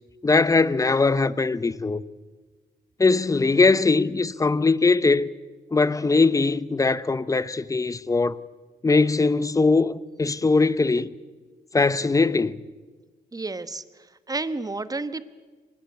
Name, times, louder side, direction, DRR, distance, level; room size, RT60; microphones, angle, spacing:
voice 1, 0.2-2.0 3.0-5.3 5.7-8.4 8.8-11.1 11.7-12.6, left 3 dB, 20° left, 0.7 m, -21 dB
voice 2, 13.3-13.8 14.3-15.2, right 3 dB, 20° right, 1.1 m, -30 dB
25.0 x 19.5 x 8.2 m
cardioid pair, 95°, 17 cm